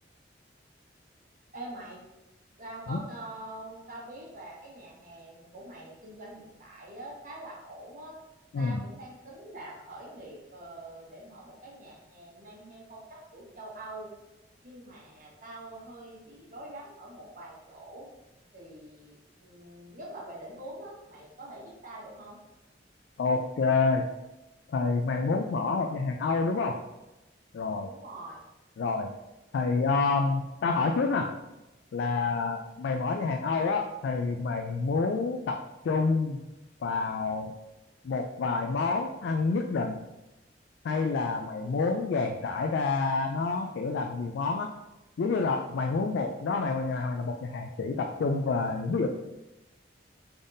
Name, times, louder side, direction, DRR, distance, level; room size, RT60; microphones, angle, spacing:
voice 1, 1.5-2.0 2.6-8.1 8.6-13.0 13.3-14.1 14.6-18.1 18.5-19.1 19.4-22.4 27.8-28.4 41.6-41.8, right 1 dB, 50° right, -4 dB, 1.1 m, -44 dB
voice 2, 23.2-24.1 24.7-26.8 27.5-27.9 28.8-29.1 29.5-31.3 31.9-36.4 36.8-37.5 38.0-40.0 40.8-44.7 45.2-49.1, left 4 dB, 75° left, 3 dB, 0.3 m, -28 dB
3.9 x 3.5 x 2.6 m, 0.97 s
head